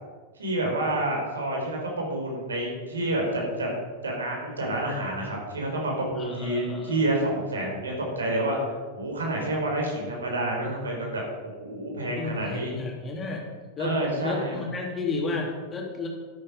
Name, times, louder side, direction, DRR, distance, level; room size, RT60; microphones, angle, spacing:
voice 1, 0.3-3.7 4.0-8.6 8.9-11.2 11.6-12.7 13.8-14.6, right 1 dB, 70° right, -1 dB, 5.2 m, -28 dB
voice 2, 6.2-7.0 11.9-13.4 13.8-13.9 14.2-16.1, left 4 dB, 20° left, 0 dB, 3.4 m, -32 dB
13.0 x 13.0 x 5.5 m, 1.4 s
figure-of-eight pair, 90°, 0 cm